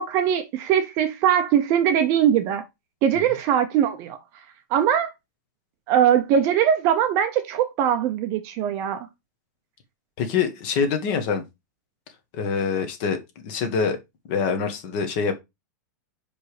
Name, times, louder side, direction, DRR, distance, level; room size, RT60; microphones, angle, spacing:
voice 1, 0.0-2.6 3.0-4.2 4.7-5.1 5.9-9.1, right 9 dB, 30° right, 0.8 m, -21 dB
voice 2, 10.2-11.4 12.3-14.0 14.3-15.4, left 6 dB, 35° left, 1.6 m, -25 dB
5.3 x 5.2 x 4.9 m
supercardioid pair, 175°, 10 cm